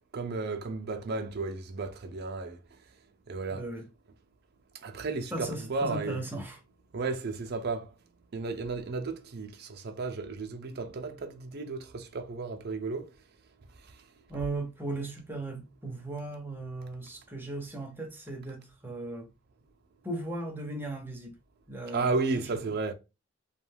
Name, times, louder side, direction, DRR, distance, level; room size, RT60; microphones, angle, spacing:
voice 1, 0.1-2.6 3.3-3.6 4.8-6.2 6.9-7.9 8.3-13.1 21.9-22.9, right 3 dB, 55° right, 0.5 m, -33 dB
voice 2, 3.5-3.9 5.3-6.6 14.3-19.3 20.0-21.4 21.7-22.6, right 2 dB, 10° right, 0.7 m, -37 dB
2.3 x 2.2 x 3.3 m
head